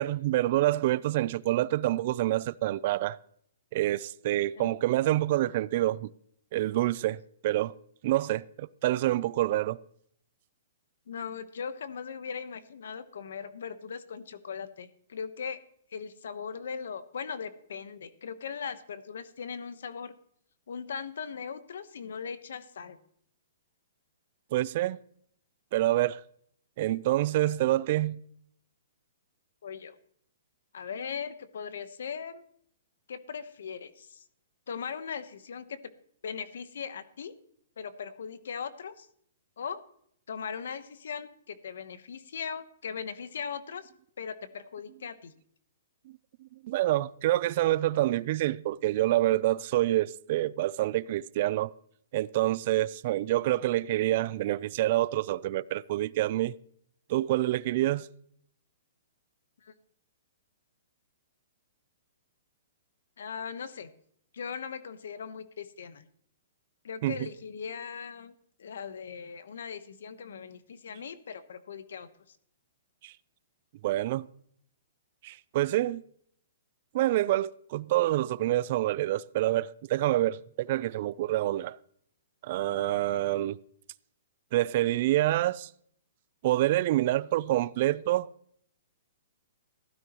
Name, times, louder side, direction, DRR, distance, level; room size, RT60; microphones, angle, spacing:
voice 1, 0.0-3.2 3.7-6.1 6.5-7.2 7.4-7.7 8.0-9.8 24.5-25.0 25.7-26.2 26.8-28.2 46.6-51.7 52.1-56.5 57.1-58.1 67.0-67.3 73.0-73.1 73.8-74.3 75.2-76.0 76.9-81.8 82.4-83.6 84.5-85.7 86.4-88.3, right 15 dB, 45° right, 0.4 m, -27 dB
voice 2, 11.1-15.6 15.9-20.1 20.7-23.0 27.3-27.5 29.6-30.0 30.7-32.4 33.1-34.2 34.7-35.8 36.2-37.3 37.8-39.1 39.6-39.8 40.3-43.9 44.2-45.3 59.6-59.7 63.2-63.9 64.3-66.1 66.8-68.3 68.6-72.1 82.8-83.0, left 6 dB, 75° left, 1.1 m, -39 dB
15.5 x 12.5 x 3.0 m
hypercardioid pair, 150°, 0 cm